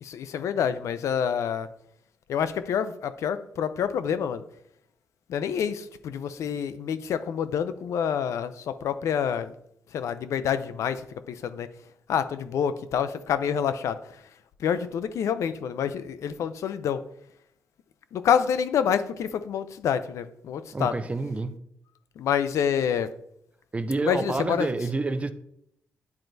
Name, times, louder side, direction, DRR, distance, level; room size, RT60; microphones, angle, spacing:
voice 1, 0.0-1.7 2.3-4.4 5.3-9.5 9.9-11.7 12.1-14.0 14.6-17.0 18.1-20.9 22.2-23.1 24.0-24.7, left 8 dB, 80° left, 0.4 m, -27 dB
voice 2, 20.7-21.6 23.7-25.3, right 3 dB, 25° right, 0.5 m, -28 dB
9.6 x 4.4 x 2.6 m
cardioid pair, 85°, 5 cm